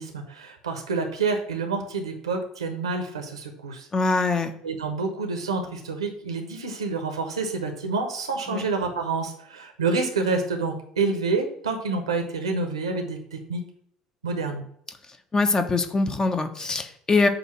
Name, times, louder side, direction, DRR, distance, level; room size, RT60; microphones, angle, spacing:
voice 1, 0.0-3.9 4.6-13.6 14.2-14.6, right 4 dB, 80° right, 4 dB, 1.0 m, -28 dB
voice 2, 3.9-4.5 8.5-8.6 15.3-17.3, left 3 dB, 25° left, 7 dB, 0.9 m, -23 dB
7.9 x 2.7 x 6.0 m, 0.68 s
figure-of-eight pair, 60°, 3 cm